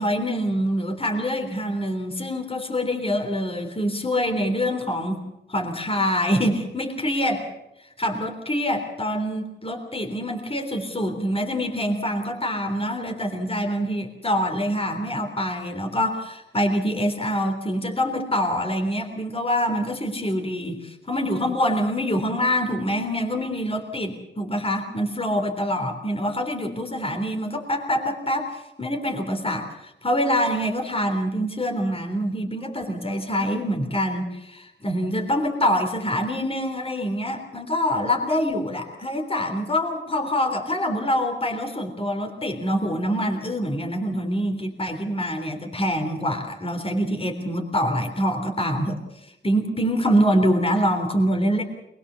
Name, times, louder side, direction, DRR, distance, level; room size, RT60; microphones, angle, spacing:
voice 1, 0.0-5.2 5.5-7.5 8.0-49.0 49.4-51.6, equal, 30° left, 3 dB, 3.6 m, -25 dB
22.0 x 21.5 x 7.0 m, 0.89 s
cardioid pair, 60°, 20 cm